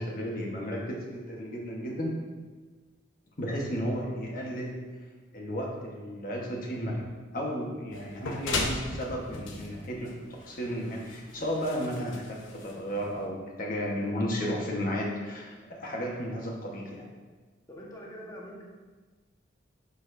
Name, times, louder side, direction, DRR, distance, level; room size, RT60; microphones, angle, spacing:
voice 1, 0.0-2.2 3.4-4.8 5.3-7.0 7.3-17.1, equal, 45° left, -2 dB, 1.2 m, -33 dB
sound 1, 7.9-13.3, left 2 dB, 80° left, 1.0 m, -37 dB
voice 2, 17.7-18.6, equal, 20° left, -4 dB, 1.3 m, -43 dB
10.5 x 6.6 x 2.6 m, 1.4 s
head